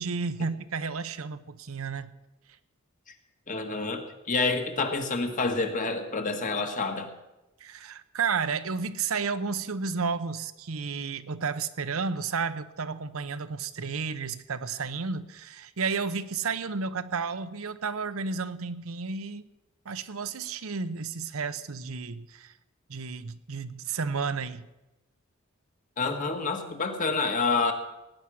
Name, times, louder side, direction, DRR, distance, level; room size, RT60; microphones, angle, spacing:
voice 1, 0.0-2.1 7.6-19.5 19.8-22.5 22.9-24.7, right 5 dB, 85° right, 12 dB, 0.8 m, -32 dB
voice 2, 3.5-7.1 26.0-27.7, left 3 dB, 40° left, 5 dB, 1.6 m, -28 dB
18.0 x 9.8 x 6.3 m, 0.99 s
head